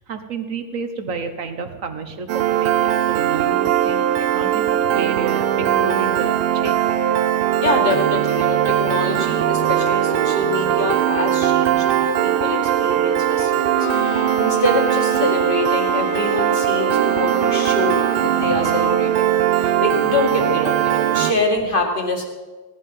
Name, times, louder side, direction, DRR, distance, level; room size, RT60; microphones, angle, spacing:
voice 1, 0.0-4.1 4.3-6.8 18.4-18.8, right 4 dB, 45° right, 8 dB, 1.2 m, -30 dB
Piano, 2.3-21.3, right 11 dB, 90° right, 1.6 m, -20 dB
voice 2, 7.6-22.3, left 2 dB, 25° left, 2 dB, 2.2 m, -25 dB
Bowed string instrument, 13.7-19.2, left 4 dB, 60° left, 2.0 m, -31 dB
17.5 x 11.0 x 5.5 m, 1.3 s
omnidirectional pair, 2.3 m